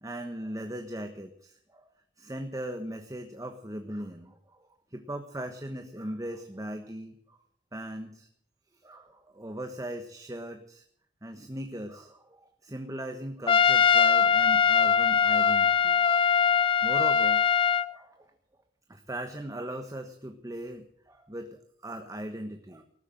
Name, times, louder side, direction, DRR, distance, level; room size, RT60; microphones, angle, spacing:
voice 1, 0.0-1.9 2.2-7.4 7.7-8.3 8.8-10.8 11.2-16.0 16.8-17.4 17.9-18.3 18.9-22.8, right 1 dB, 20° right, 5 dB, 1.2 m, -39 dB
Trumpet, 13.5-17.9, left 7 dB, 30° left, 0.5 m, -22 dB
19.0 x 8.2 x 9.1 m, 0.64 s
head